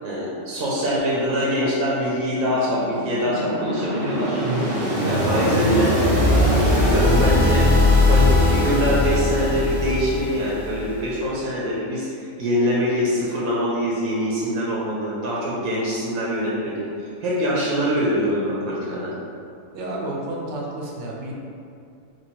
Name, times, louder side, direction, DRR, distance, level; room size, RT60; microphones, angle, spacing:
voice 1, 0.0-4.4 4.7-6.0 6.5-19.1, equal, 80° right, -6 dB, 1.1 m, -24 dB
sound 1, 2.6-11.1, left 1 dB, 40° right, 0.5 m, -20 dB
voice 2, 19.7-21.3, right 1 dB, 60° right, -3 dB, 0.8 m, -30 dB
3.0 x 2.3 x 4.3 m, 2.5 s
omnidirectional pair, 1.5 m